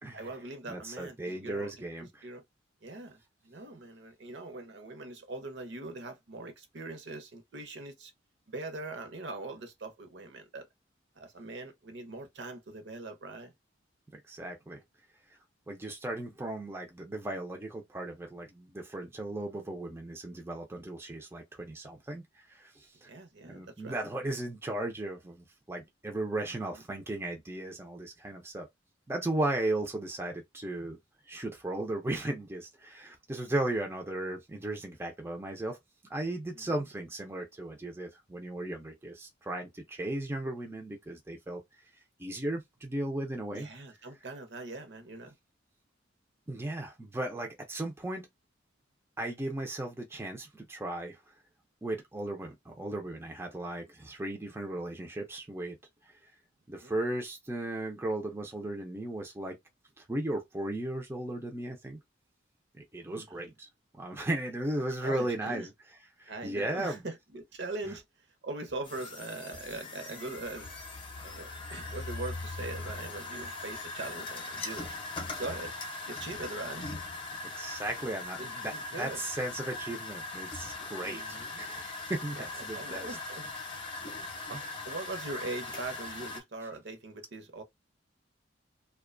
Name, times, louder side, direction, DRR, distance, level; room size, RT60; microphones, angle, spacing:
voice 1, 0.1-1.7 2.0-2.4 2.8-8.1 8.5-10.7 11.2-13.5 23.0-24.1 26.3-26.8 36.5-36.9 43.5-45.3 56.8-56.9 63.0-63.5 65.0-65.7 66.3-70.7 71.2-74.9 75.4-75.7 76.1-76.9 78.4-79.2 81.0-81.6 82.4-83.4 84.5-87.6, right 2 dB, 60° right, 0.7 m, -42 dB
voice 2, 0.7-2.3 14.3-14.8 15.7-23.1 23.4-28.7 29.1-31.0 31.3-35.8 36.1-41.6 42.2-43.7 46.5-48.3 49.2-51.2 51.8-55.8 56.7-59.6 60.0-62.0 62.7-63.7 63.9-65.7 66.2-67.0 77.5-83.2 84.5-84.6, right 1 dB, 15° right, 0.4 m, -36 dB
sound 1, 68.8-86.4, left 3 dB, 25° left, 0.6 m, -40 dB
2.5 x 2.2 x 2.4 m
head